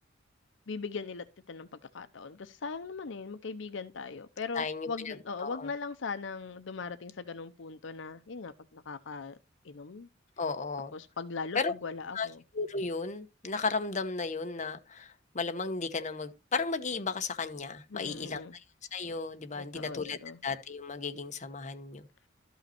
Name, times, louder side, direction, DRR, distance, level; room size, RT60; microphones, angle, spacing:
voice 1, 0.7-1.7 1.9-9.4 9.6-10.1 10.9-12.4 17.9-18.5 19.5-20.4, left 4 dB, 70° left, 0.7 m, -40 dB
voice 2, 4.5-5.7 10.4-10.9 11.5-11.7 12.1-12.3 12.5-18.6 18.9-22.1, left 4 dB, 40° left, 1.0 m, -34 dB
13.0 x 5.6 x 4.3 m
head